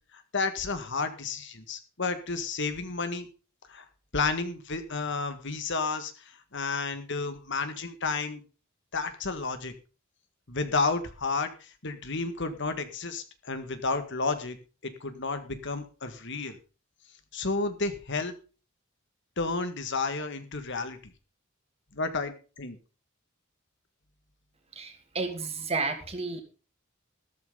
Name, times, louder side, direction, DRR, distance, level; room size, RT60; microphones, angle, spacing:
voice 1, 0.1-3.3 3.7-3.9 4.1-8.4 8.9-9.7 10.5-14.6 14.8-16.6 17.3-18.3 19.4-21.0 21.9-22.8, left 3 dB, 60° left, 9 dB, 1.9 m, -31 dB
voice 2, 24.8-26.4, right 3 dB, 30° right, 6 dB, 2.5 m, -32 dB
13.5 x 13.5 x 4.0 m, 0.35 s
head